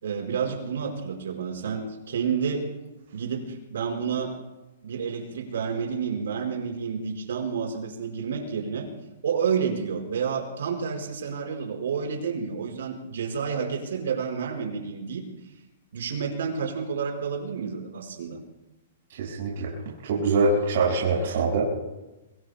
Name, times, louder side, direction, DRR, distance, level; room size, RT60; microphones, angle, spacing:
voice 1, 0.0-2.7 3.1-4.4 4.8-8.9 9.2-15.3 15.9-18.4, right 6 dB, 80° right, 1 dB, 5.0 m, -30 dB
voice 2, 19.2-19.7 20.0-21.7, right 3 dB, 60° right, -3 dB, 5.3 m, -24 dB
24.0 x 22.5 x 2.3 m, 1.0 s
hypercardioid pair, 150°, 0 cm